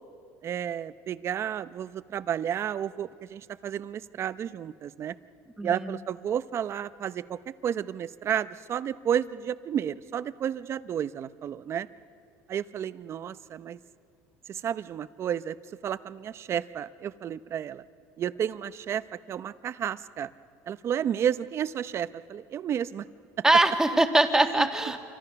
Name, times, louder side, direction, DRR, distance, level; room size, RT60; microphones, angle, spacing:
voice 1, 0.4-5.2 5.6-11.9 12.5-13.8 14.5-15.6 15.8-17.8 18.2-20.3 20.7-23.1 24.5-24.7, right 9 dB, 45° right, 14 dB, 0.7 m, -31 dB
voice 2, 5.6-6.0 23.4-25.0, right 2 dB, 10° right, 5 dB, 1.9 m, -22 dB
27.5 x 24.5 x 5.9 m, 2.3 s
supercardioid pair, 105°, 7 cm